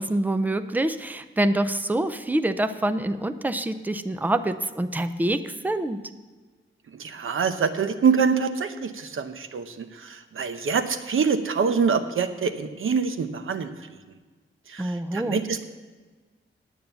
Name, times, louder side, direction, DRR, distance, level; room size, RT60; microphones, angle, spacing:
voice 1, 0.0-6.0 14.8-15.4, right 1 dB, 10° right, 10 dB, 0.4 m, -26 dB
voice 2, 6.9-13.7 14.7-15.6, right 5 dB, 75° right, 9 dB, 0.8 m, -25 dB
9.0 x 9.0 x 6.8 m, 1.4 s
wide cardioid pair, 175°, 21 cm